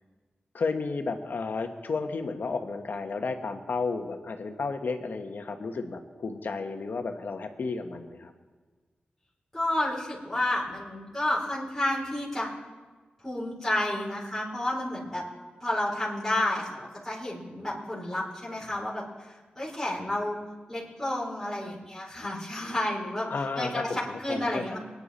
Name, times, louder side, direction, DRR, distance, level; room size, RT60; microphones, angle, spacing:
voice 1, 0.5-8.3 23.3-24.8, left 4 dB, 70° left, 5 dB, 1.3 m, -32 dB
voice 2, 9.5-12.5 13.2-15.2 15.6-20.4 20.7-23.3 23.6-24.8, left 1 dB, 5° left, -8 dB, 4.1 m, -31 dB
23.5 x 9.8 x 4.3 m, 1.4 s
wide cardioid pair, 90°, 3 cm